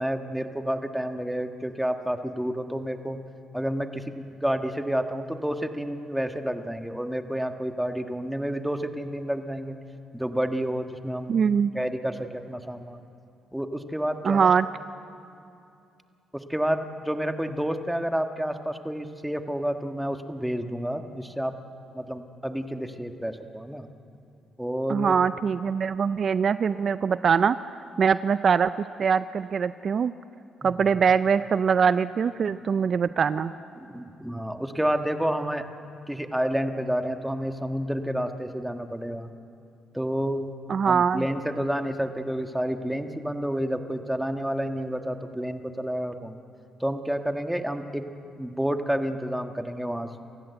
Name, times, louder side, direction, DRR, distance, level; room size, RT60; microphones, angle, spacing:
voice 1, 0.0-3.2 3.5-9.8 10.1-11.3 11.7-13.0 13.5-14.5 16.3-21.6 21.9-23.9 24.6-25.2 30.6-30.9 33.8-35.7 36.1-39.3 39.9-40.5 40.8-46.4 46.8-48.1 48.4-50.1, equal, 5° right, 6 dB, 1.4 m, -29 dB
voice 2, 11.3-11.7 14.2-14.7 24.9-27.6 28.0-28.7 29.0-30.1 30.6-33.5 40.7-41.2, right 6 dB, 50° right, 14 dB, 0.4 m, -22 dB
28.5 x 15.5 x 8.0 m, 2.6 s
cardioid pair, 90°, 0 cm